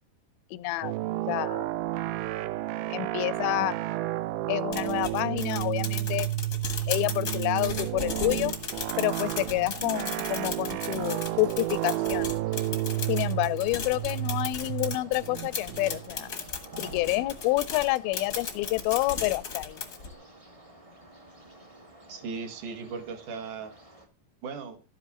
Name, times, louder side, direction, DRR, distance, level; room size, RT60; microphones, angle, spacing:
voice 1, 0.5-1.0 1.3-1.7 2.9-3.8 4.5-6.3 6.9-8.5 9.0-12.3 13.1-16.3 16.8-19.8, left 19 dB, 85° left, 2.5 m, -28 dB
sound 1, 0.8-17.4, right 16 dB, 90° right, 2.5 m, -32 dB
sound 2, 4.7-20.1, left 5 dB, 65° left, 0.9 m, -37 dB
sound 3, 8.4-24.1, right 1 dB, 35° right, 0.5 m, -51 dB
voice 2, 22.1-23.7 24.4-24.8, right 5 dB, 65° right, 2.5 m, -37 dB
12.5 x 9.4 x 2.9 m
omnidirectional pair, 4.2 m